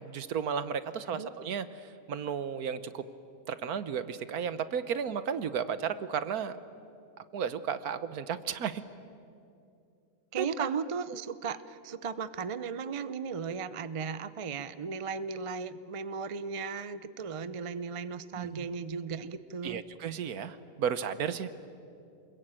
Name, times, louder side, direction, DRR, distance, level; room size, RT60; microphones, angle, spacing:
voice 1, 0.0-1.7 2.1-3.0 3.5-6.6 7.3-8.8 10.4-10.5 18.3-18.7 19.6-21.5, right 7 dB, 75° right, 13 dB, 1.5 m, -33 dB
voice 2, 10.3-19.8, right 5 dB, 40° right, 14 dB, 0.5 m, -36 dB
28.5 x 21.5 x 9.0 m, 2.5 s
omnidirectional pair, 1.6 m